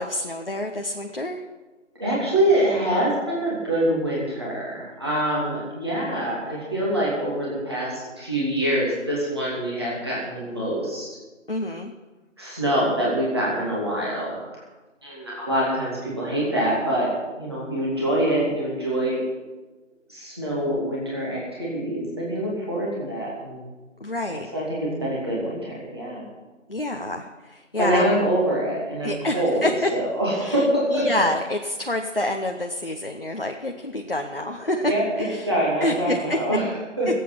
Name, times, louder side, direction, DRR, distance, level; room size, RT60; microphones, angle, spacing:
voice 1, 0.0-1.4 11.5-11.9 24.0-24.5 26.7-28.0 29.0-29.9 30.4-30.6 30.9-35.5 35.8-36.4, left 1 dB, 45° left, 3 dB, 0.9 m, -27 dB
voice 2, 2.0-11.1 12.4-14.6 15.0-19.2 20.1-23.7 24.3-26.3 27.8-29.7 29.9-31.2 34.8-37.1, right 1 dB, 20° right, -6 dB, 2.8 m, -25 dB
20.5 x 8.4 x 5.8 m, 1.2 s
figure-of-eight pair, 175°, 38 cm